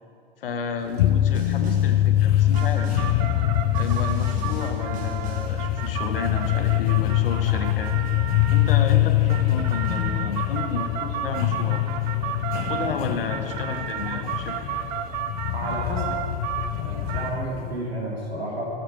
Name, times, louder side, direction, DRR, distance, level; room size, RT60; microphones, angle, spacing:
voice 1, 0.4-2.9 3.8-7.9 8.5-11.8 12.5-14.7, left 4 dB, 65° left, 6 dB, 1.0 m, -32 dB
sound 1, 0.8-17.3, right 9 dB, 45° right, 0.6 m, -34 dB
sound 2, 1.0-17.8, left 14 dB, 40° left, 0.4 m, -24 dB
Snare drum, 1.3-2.0 2.5-3.2 3.7-5.6, right 2 dB, 25° right, 1.5 m, -42 dB
voice 2, 15.5-16.2 16.7-18.7, right 1 dB, 80° right, -3 dB, 2.6 m, -31 dB
10.5 x 7.2 x 4.7 m, 2.4 s
figure-of-eight pair, 95°, 30 cm